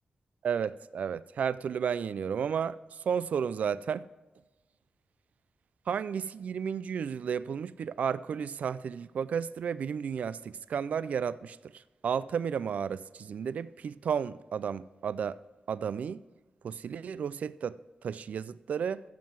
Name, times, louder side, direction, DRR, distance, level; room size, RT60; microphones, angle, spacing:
voice 1, 0.4-4.1 5.9-15.4 15.7-16.2 16.6-19.0, right 7 dB, 70° right, 0.3 m, -33 dB
15.0 x 7.5 x 4.6 m
wide cardioid pair, 170°, 3 cm